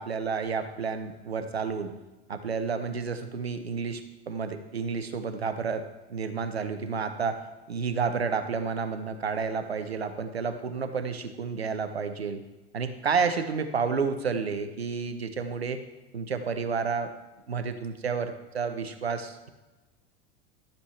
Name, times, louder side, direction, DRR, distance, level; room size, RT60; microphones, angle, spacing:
voice 1, 0.0-1.9 2.3-5.8 6.1-7.4 7.7-12.4 12.7-15.8 16.1-17.1 17.5-19.5, right 5 dB, 90° right, 9 dB, 0.9 m, -30 dB
13.5 x 7.3 x 3.3 m, 1.1 s
hypercardioid pair, 85°, 31 cm